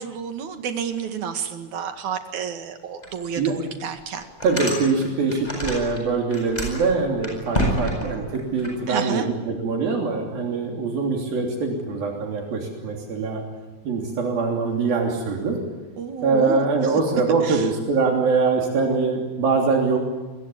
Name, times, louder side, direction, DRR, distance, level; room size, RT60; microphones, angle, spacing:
voice 1, 0.0-4.2 8.9-9.3 16.0-16.6 17.4-17.6, right 7 dB, 60° right, 7 dB, 3.1 m, -30 dB
sound 1, 3.0-3.1 3.6-3.7 4.2-6.0 6.3-8.7, equal, 10° left, 7.8 m, -28 dB
voice 2, 4.4-13.4 13.8-15.6 16.2-20.0, right 4 dB, 80° right, 1 dB, 5.0 m, -23 dB
27.0 x 21.5 x 9.7 m, 1.2 s
omnidirectional pair, 4.1 m